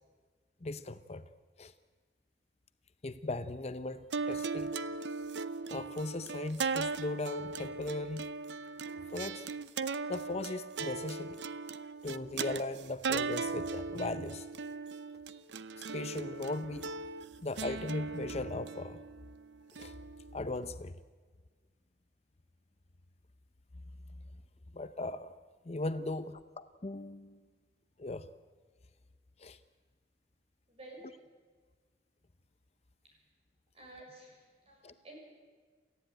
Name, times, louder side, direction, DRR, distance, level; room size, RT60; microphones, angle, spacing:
voice 1, 0.6-1.2 1.6-1.7 3.0-4.7 5.7-8.3 9.1-9.5 10.1-11.4 12.0-14.5 15.8-16.9 17.4-19.0 19.8-19.9 20.3-20.9 24.7-25.3 25.7-27.4 28.0-28.3 29.4-29.6 34.8-34.9, left 2 dB, 40° left, 11 dB, 0.7 m, -38 dB
sound 1, 4.1-20.6, right 4 dB, 85° right, 0.8 m, -38 dB
voice 2, 30.7-31.2 33.7-35.2, right 1 dB, 35° right, 0 dB, 7.1 m, -52 dB
29.0 x 14.5 x 9.1 m, 1.5 s
head